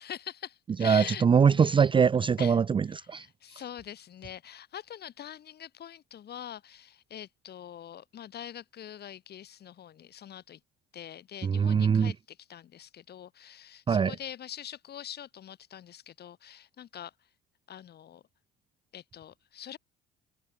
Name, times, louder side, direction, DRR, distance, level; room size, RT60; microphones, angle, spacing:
voice 1, 0.0-1.7 2.4-2.6 3.1-10.6 10.9-17.1 17.7-18.2 18.9-19.8, left 10 dB, 50° left, 5.7 m, -44 dB
voice 2, 0.8-3.3 11.4-12.1 13.9-14.1, right 6 dB, 25° right, 0.5 m, -23 dB
hypercardioid pair, 65°, 21 cm